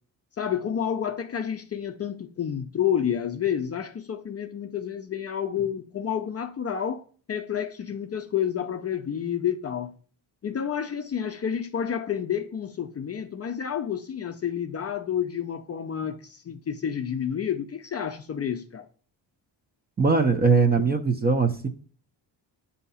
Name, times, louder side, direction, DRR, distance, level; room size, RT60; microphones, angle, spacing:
voice 1, 0.4-9.9 10.4-18.9, left 8 dB, 35° left, 0.4 m, -29 dB
voice 2, 20.0-21.7, right 4 dB, 25° right, 0.4 m, -21 dB
7.9 x 2.8 x 5.4 m
wide cardioid pair, 145°, 44 cm